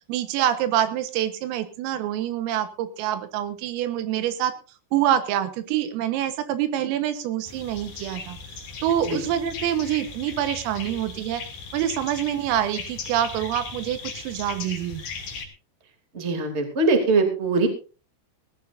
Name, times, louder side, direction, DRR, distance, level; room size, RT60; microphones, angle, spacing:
voice 1, 0.1-4.5 4.9-8.4 8.8-11.4 11.7-15.0, right 11 dB, 85° right, 9 dB, 3.9 m, -26 dB
sound 1, 7.5-15.5, left 5 dB, 45° left, 3.6 m, -38 dB
voice 2, 16.1-17.7, right 3 dB, 20° right, 4 dB, 2.0 m, -22 dB
20.5 x 15.5 x 2.7 m, 0.35 s
omnidirectional pair, 5.9 m